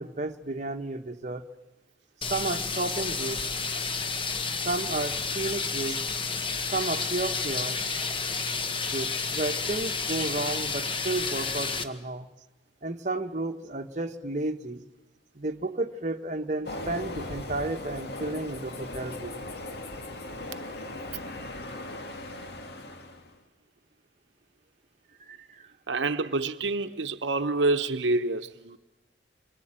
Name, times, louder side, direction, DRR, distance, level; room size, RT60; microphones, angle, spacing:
voice 1, 0.0-1.5 2.3-3.4 4.6-6.0 6.7-7.8 8.9-12.3 12.8-14.9 15.3-19.5 25.2-25.7, right 2 dB, 40° right, 1.2 m, -32 dB
sound 1, 2.2-11.8, left 4 dB, 30° left, 1.4 m, -31 dB
Train, 16.6-23.4, left 2 dB, 60° left, 2.3 m, -38 dB
voice 2, 25.9-28.8, right 2 dB, 75° right, 1.0 m, -27 dB
27.0 x 23.5 x 8.9 m
head